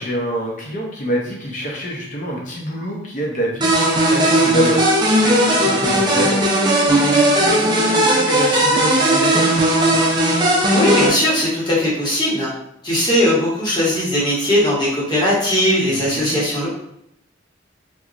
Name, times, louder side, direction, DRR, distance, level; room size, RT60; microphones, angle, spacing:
voice 1, 0.0-4.8 5.2-9.4 15.9-16.5, right 1 dB, 45° left, -2 dB, 0.7 m, -26 dB
sound 1, 3.6-11.1, right 1 dB, 25° right, 0.4 m, -16 dB
voice 2, 10.7-12.5 12.8-16.7, left 1 dB, 25° left, -7 dB, 1.0 m, -18 dB
2.9 x 2.2 x 2.4 m, 0.76 s
head